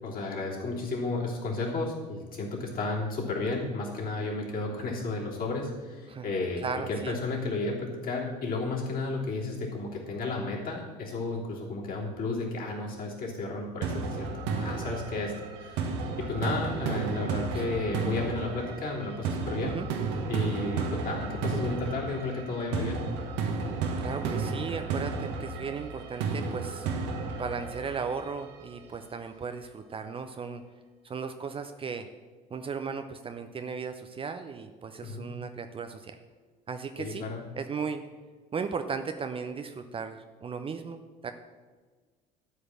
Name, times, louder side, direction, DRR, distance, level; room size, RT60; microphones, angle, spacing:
voice 1, 0.0-6.6 6.9-19.7 20.3-23.0 35.0-35.3 37.0-37.4, left 3 dB, 45° left, -3 dB, 3.1 m, -33 dB
voice 2, 6.6-7.2 17.5-17.7 19.6-19.9 24.0-26.9 27.4-30.6 31.0-32.1 32.5-36.2 36.7-37.3 37.6-38.1 38.5-41.3, right 5 dB, 25° right, 8 dB, 0.7 m, -36 dB
sound 1, 13.8-28.8, right 4 dB, 60° right, 1.3 m, -33 dB
12.5 x 5.0 x 7.3 m, 1.4 s
figure-of-eight pair, 60°, 21 cm